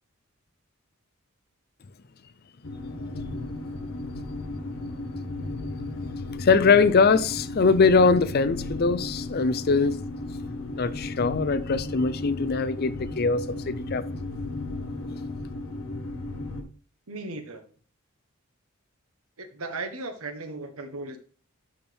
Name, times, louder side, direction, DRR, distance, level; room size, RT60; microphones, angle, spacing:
sound 1, 2.6-16.6, left 2 dB, 65° left, 1.1 m, -35 dB
voice 1, 6.4-10.0 10.8-14.1, left 4 dB, 45° left, 0.5 m, -22 dB
voice 2, 17.1-17.6 19.4-21.2, right 3 dB, 90° right, 1.2 m, -36 dB
12.0 x 4.4 x 3.4 m
head